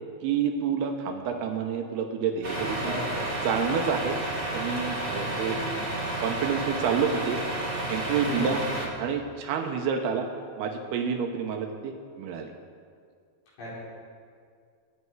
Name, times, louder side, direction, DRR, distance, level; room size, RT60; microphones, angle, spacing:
voice 1, 0.2-2.9 3.4-4.2 4.5-5.6 6.2-7.4 7.9-8.6 9.0-10.3 10.6-12.5, right 6 dB, 75° right, 4 dB, 2.5 m, -28 dB
Truck, 2.4-8.9, right 1 dB, 55° right, 0.5 m, -31 dB
voice 2, 2.8-3.3 5.2-5.8 8.2-8.6 13.6-13.7, left 1 dB, 65° left, -8 dB, 6.5 m, -36 dB
22.0 x 9.6 x 4.8 m, 2.1 s
omnidirectional pair, 5.4 m